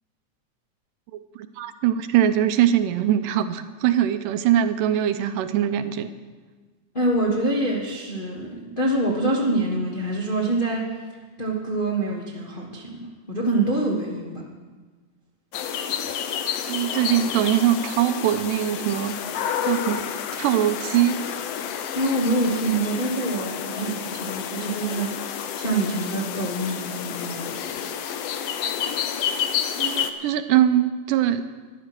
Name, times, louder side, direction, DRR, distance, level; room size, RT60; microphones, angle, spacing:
voice 1, 1.4-6.1 16.7-19.2 19.6-20.1 20.4-21.2 29.8-31.4, right 11 dB, 90° right, 10 dB, 2.3 m, -22 dB
voice 2, 6.9-11.0 11.4-14.4 21.9-27.7, right 2 dB, 70° left, -3 dB, 0.5 m, -26 dB
sound 1, 15.5-30.1, left 8 dB, 85° left, 1.3 m, -30 dB
13.0 x 11.0 x 6.0 m, 1.4 s
omnidirectional pair, 3.7 m